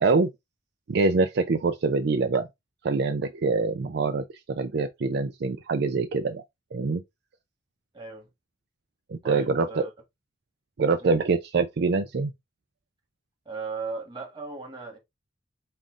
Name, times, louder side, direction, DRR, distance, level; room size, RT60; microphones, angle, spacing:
voice 1, 0.9-2.5 2.8-6.4 6.7-7.0 9.1-9.9 10.8-12.3, right 4 dB, 60° right, 0.4 m, -25 dB
voice 2, 7.9-8.3 9.2-9.9 11.0-11.2 13.5-15.0, right 4 dB, 25° right, 1.7 m, -37 dB
5.5 x 2.4 x 3.7 m
head